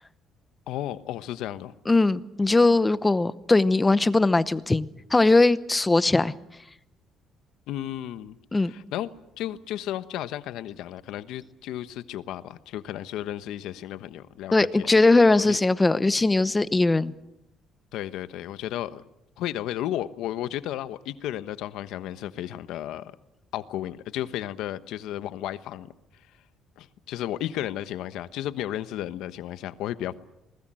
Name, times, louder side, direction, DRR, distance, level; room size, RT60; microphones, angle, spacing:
voice 1, 0.7-1.7 7.7-8.4 8.7-9.1 9.4-14.9 15.3-15.6 17.9-19.0 19.4-23.1 23.5-25.9 26.8-30.1, left 12 dB, 80° left, 13 dB, 1.1 m, -33 dB
voice 2, 1.9-6.3 8.5-8.7 14.5-17.1, left 2 dB, 15° left, 16 dB, 0.8 m, -20 dB
27.0 x 20.5 x 7.7 m, 0.87 s
cardioid pair, 125°, 0 cm